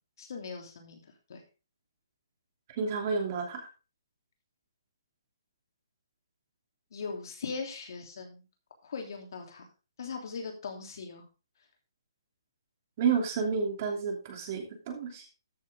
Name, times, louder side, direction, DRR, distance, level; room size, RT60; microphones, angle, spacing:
voice 1, 0.2-1.0 1.3-1.4 6.9-8.4 8.8-9.6 10.0-11.2, left 5 dB, 60° left, 3 dB, 3.1 m, -39 dB
voice 2, 2.8-3.7 13.0-15.3, right 5 dB, 35° right, 2 dB, 2.9 m, -30 dB
13.5 x 6.5 x 3.6 m, 0.31 s
hypercardioid pair, 160°, 2 cm